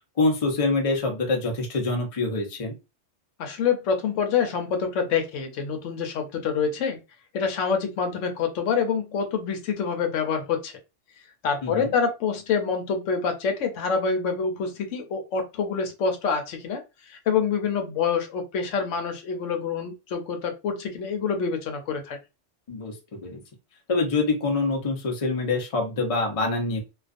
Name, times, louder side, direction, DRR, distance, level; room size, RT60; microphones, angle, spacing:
voice 1, 0.2-2.7 11.6-11.9 22.7-22.9 23.2-23.4 23.9-26.8, left 3 dB, 35° left, 2 dB, 0.7 m, -25 dB
voice 2, 3.4-7.0 7.3-10.8 11.4-16.8 17.1-22.2, left 6 dB, 90° left, 5 dB, 1.0 m, -26 dB
2.4 x 2.3 x 2.4 m, 0.26 s
omnidirectional pair, 1.2 m